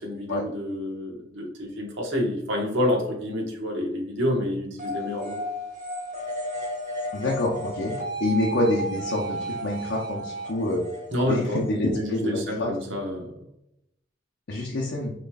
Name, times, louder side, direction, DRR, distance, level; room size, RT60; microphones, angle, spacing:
voice 1, 0.0-5.4 11.1-13.3, left 1 dB, 80° right, 0 dB, 1.2 m, -28 dB
sound 1, 4.8-12.3, right 1 dB, 45° right, 1.4 m, -33 dB
voice 2, 7.1-8.0 8.2-10.8 11.2-12.7 14.5-15.1, left 1 dB, 65° left, -2 dB, 0.8 m, -27 dB
6.5 x 3.1 x 2.3 m, 0.80 s
head